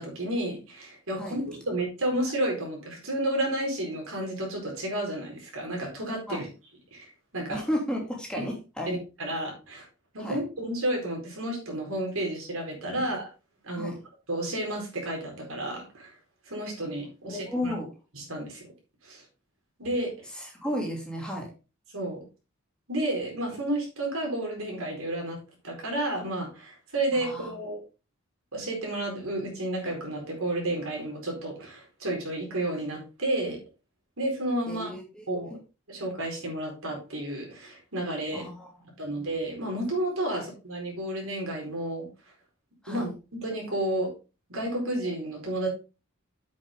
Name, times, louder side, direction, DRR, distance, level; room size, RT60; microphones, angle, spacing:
voice 1, 0.0-6.5 6.9-7.0 7.3-7.6 8.4-8.5 8.9-9.8 10.1-13.3 13.6-13.9 14.3-16.1 16.5-17.7 18.1-18.7 19.0-19.2 19.8-20.1 21.9-22.2 22.9-25.4 25.6-27.8 28.5-33.6 34.2-34.9 35.3-35.6 35.9-38.5 39.0-42.1 42.9-43.1 43.4-44.1 44.5-45.7, right 1 dB, 80° right, 0 dB, 4.6 m, -31 dB
voice 2, 7.5-8.9 10.2-10.4 13.8-14.0 17.2-17.9 20.3-21.5 27.1-27.5 34.7-35.3 38.3-39.3 40.3-40.4 42.8-43.1, equal, 5° left, -2 dB, 2.7 m, -34 dB
8.6 x 7.6 x 3.7 m, 0.31 s
head